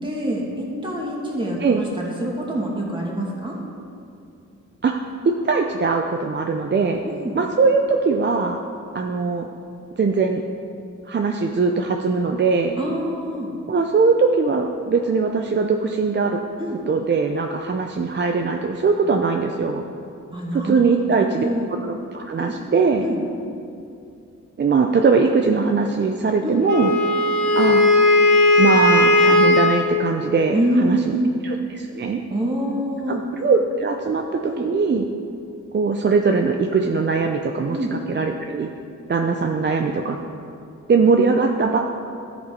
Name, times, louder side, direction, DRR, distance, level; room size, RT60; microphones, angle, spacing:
voice 1, 0.0-3.6 7.0-7.4 12.8-13.5 16.6-16.8 20.3-21.7 22.4-22.5 23.0-23.2 26.4-26.7 30.5-31.3 32.3-33.2 34.4-34.6 37.7-37.9, right 1 dB, 15° right, -4 dB, 2.4 m, -25 dB
voice 2, 4.8-7.0 7.3-8.6 8.9-9.5 10.0-10.4 11.1-12.8 13.7-16.4 16.9-19.8 20.5-21.5 21.8-23.0 24.6-26.9 27.6-27.9 28.6-31.2 31.4-32.2 33.1-35.0 35.7-38.7 39.1-40.2 40.9-41.8, right 4 dB, 35° right, 3 dB, 0.6 m, -21 dB
Wind instrument woodwind instrument, 26.7-29.9, left 2 dB, 75° left, 1.3 m, -16 dB
13.0 x 5.2 x 5.3 m, 2.6 s
cardioid pair, 80°, 30 cm